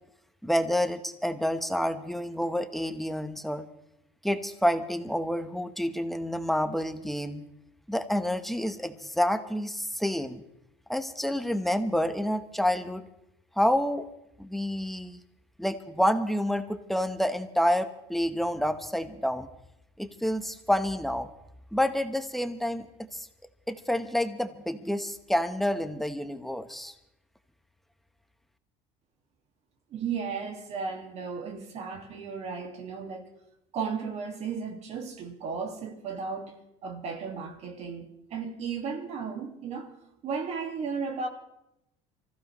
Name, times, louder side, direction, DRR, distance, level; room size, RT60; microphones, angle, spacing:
voice 1, 0.4-3.7 4.2-7.4 7.9-10.4 10.9-13.1 13.6-14.0 14.4-15.2 15.6-19.5 20.0-21.3 21.7-22.9 23.1-23.3 23.7-26.9, equal, ahead, 1.1 m, -28 dB
voice 2, 29.9-33.3 33.7-36.6 36.8-39.9 40.2-41.3, right 5 dB, 55° right, 2.1 m, -35 dB
25.0 x 15.0 x 3.2 m
cardioid pair, 110°, 13 cm